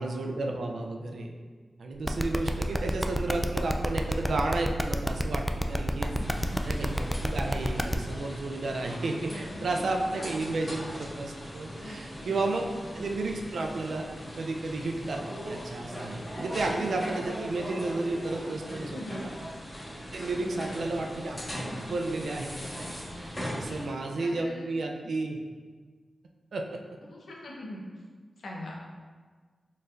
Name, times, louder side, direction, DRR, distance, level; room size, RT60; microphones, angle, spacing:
voice 1, 0.0-1.3 1.8-7.0 7.2-12.7 12.9-14.1 14.4-19.3 20.1-21.4 21.7-25.4 26.5-26.8, right 2 dB, 80° right, 2 dB, 0.4 m, -32 dB
sound 1, 2.0-7.9, equal, ahead, 0.3 m, -28 dB
voice 2, 6.0-6.6 9.0-9.8 10.2-10.3 11.8-12.4 18.8-19.2 20.4-20.8 23.4-23.8 24.2-24.7 27.0-27.8 28.4-28.8, left 1 dB, 80° left, -2 dB, 0.7 m, -42 dB
sound 2, 6.2-23.9, equal, 25° left, 1.4 m, -39 dB
4.4 x 3.1 x 2.5 m, 1.5 s
cardioid pair, 45°, 0 cm